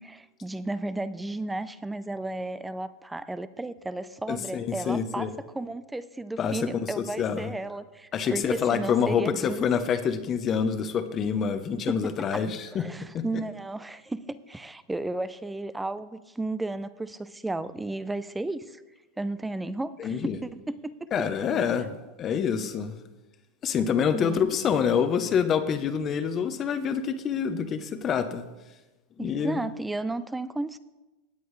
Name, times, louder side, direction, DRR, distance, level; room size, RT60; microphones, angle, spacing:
voice 1, 0.0-5.3 5.5-9.6 11.9-18.8 19.2-21.0 21.6-21.9 24.1-24.6 29.2-30.8, right 2 dB, 5° right, 15 dB, 0.4 m, -34 dB
voice 2, 4.3-5.3 6.4-7.5 8.1-12.8 13.1-13.2 20.0-20.4 21.1-23.0 23.6-28.5 29.2-29.6, left 7 dB, 25° left, 9 dB, 0.8 m, -27 dB
17.0 x 9.2 x 3.2 m, 1.1 s
supercardioid pair, 150°, 0 cm